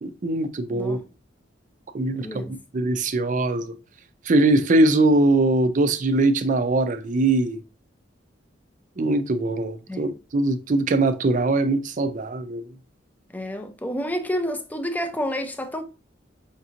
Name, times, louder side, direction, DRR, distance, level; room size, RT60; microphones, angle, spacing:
voice 1, 0.0-1.0 1.9-2.4 2.7-3.8 4.3-7.6 9.0-12.6, right 2 dB, 45° right, 0.5 m, -21 dB
voice 2, 2.1-2.6 9.9-10.0 13.3-15.8, equal, 10° left, 0.5 m, -29 dB
5.1 x 2.8 x 2.5 m
head